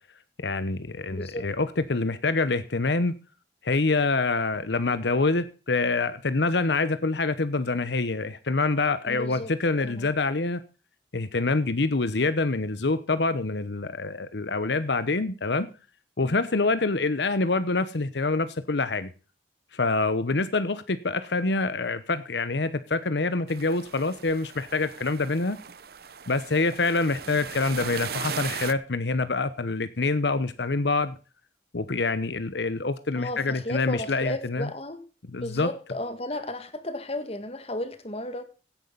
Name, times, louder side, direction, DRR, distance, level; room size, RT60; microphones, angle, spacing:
voice 1, 0.4-3.1 3.6-10.6 11.1-15.7 16.2-19.1 19.7-25.6 26.3-31.1 31.7-34.7 35.3-35.7, left 3 dB, 80° left, 13 dB, 0.9 m, -26 dB
voice 2, 1.1-1.5 9.1-10.1 16.2-16.5 33.2-35.0 35.4-38.4, left 1 dB, 35° left, 10 dB, 1.9 m, -34 dB
sound 1, 23.5-28.7, right 7 dB, 60° right, 0.8 m, -38 dB
16.5 x 9.5 x 4.0 m, 0.35 s
head